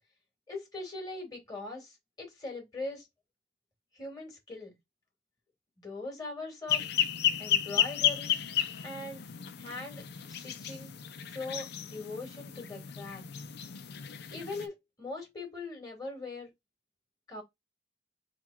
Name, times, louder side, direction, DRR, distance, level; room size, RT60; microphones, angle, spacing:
voice 1, 0.5-3.1 3.9-4.8 5.8-6.9 7.4-8.4 8.8-9.2 9.6-13.2 14.3-16.5 17.3-17.4, left 2 dB, 20° left, 2.2 m, -41 dB
sound 1, 6.7-14.7, left 10 dB, 55° left, 0.5 m, -32 dB
4.1 x 3.0 x 4.1 m
head